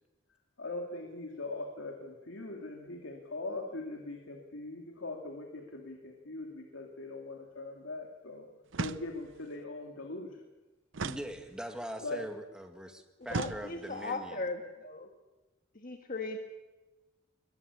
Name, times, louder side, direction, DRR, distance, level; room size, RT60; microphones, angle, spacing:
voice 1, 0.6-8.5 8.8-10.4 12.0-12.2, left 2 dB, 85° left, 2 dB, 2.7 m, -41 dB
sound 1, 8.7-9.5 10.9-11.9 13.3-14.1, right 4 dB, 70° right, 0.7 m, -38 dB
voice 2, 11.0-14.5, equal, 5° right, 4 dB, 2.0 m, -42 dB
voice 3, 13.3-15.1 15.8-16.4, left 3 dB, 45° left, 4 dB, 1.6 m, -37 dB
22.0 x 20.0 x 8.4 m, 1.1 s
head